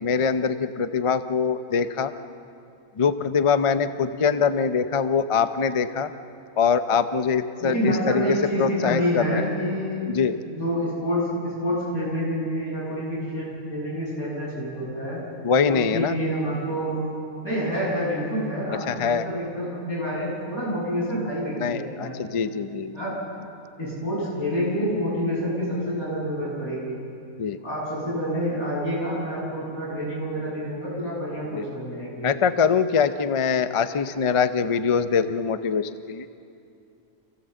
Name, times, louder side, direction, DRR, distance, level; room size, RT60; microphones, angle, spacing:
voice 1, 0.0-2.1 3.0-6.1 6.6-9.4 10.1-10.4 15.4-16.2 18.9-19.3 21.1-23.0 27.4-27.6 31.5-31.6 32.2-36.3, left 6 dB, 40° left, 10 dB, 0.5 m, -23 dB
voice 2, 7.6-15.2 15.7-17.1 17.4-22.2 22.9-23.1 23.8-27.0 27.6-32.3, equal, 90° left, -6 dB, 8.0 m, -28 dB
27.5 x 16.0 x 7.7 m, 2.5 s
omnidirectional pair, 1.5 m